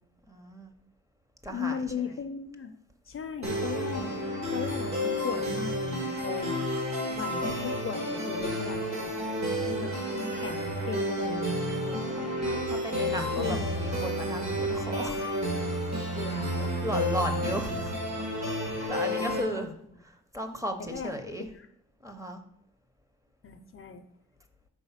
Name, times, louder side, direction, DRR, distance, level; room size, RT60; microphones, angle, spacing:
voice 1, 0.3-0.7 1.4-2.2 11.7-12.3 12.7-15.2 16.3-17.9 18.4-19.7 20.0-21.5 22.0-22.4, equal, 10° right, 6 dB, 0.6 m, -36 dB
voice 2, 1.5-2.7 3.1-4.3 4.5-6.6 7.1-9.1 9.6-11.5 13.4-13.7 16.1-16.9 18.8-19.7 20.9-21.1 21.4-21.7 23.4-24.0, left 6 dB, 45° left, 8 dB, 0.5 m, -37 dB
sound 1, 3.4-19.4, equal, 65° right, 2.3 m, -31 dB
4.8 x 3.9 x 5.6 m, 0.72 s
wide cardioid pair, 125°, 30 cm